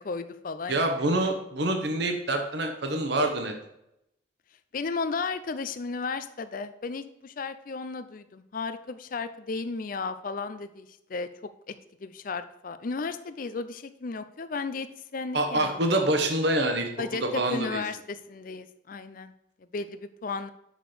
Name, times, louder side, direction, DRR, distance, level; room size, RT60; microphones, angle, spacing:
voice 1, 0.0-0.9 4.7-11.3 11.7-11.8 12.0-14.9 15.1-15.8 17.0-19.3 19.7-20.5, left 4 dB, 45° left, 11 dB, 0.4 m, -34 dB
voice 2, 0.7-3.5 15.3-17.8, right 1 dB, 55° right, 4 dB, 1.0 m, -26 dB
6.5 x 6.0 x 4.9 m, 0.81 s
head